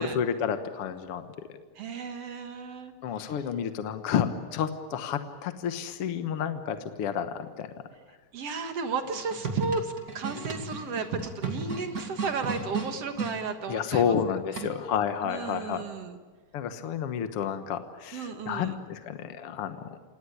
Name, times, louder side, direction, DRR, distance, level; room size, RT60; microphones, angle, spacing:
voice 1, 0.0-1.6 3.0-7.9 13.7-15.8 16.5-20.0, left 8 dB, 60° left, 9 dB, 1.6 m, -30 dB
voice 2, 1.8-2.9 8.3-14.2 15.2-16.2 18.1-18.8, right 4 dB, 55° right, 7 dB, 2.1 m, -33 dB
sound 1, 9.0-13.4 14.6-15.0, right 3 dB, 30° right, 2.3 m, -35 dB
28.0 x 18.0 x 10.0 m, 1.4 s
omnidirectional pair, 4.1 m